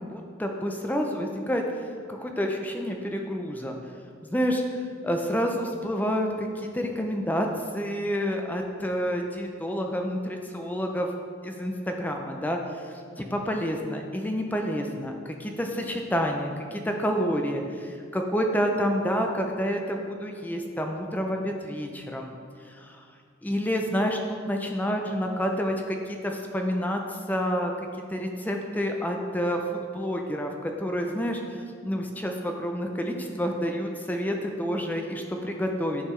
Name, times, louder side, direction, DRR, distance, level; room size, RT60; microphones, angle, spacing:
voice 1, 0.0-1.6 2.1-3.8 4.3-4.6 5.0-7.5 7.7-11.1 11.4-22.3 22.7-23.0 23.4-27.7 28.1-36.1, equal, 10° left, 3 dB, 0.4 m, -29 dB
9.5 x 5.6 x 3.2 m, 2.2 s
head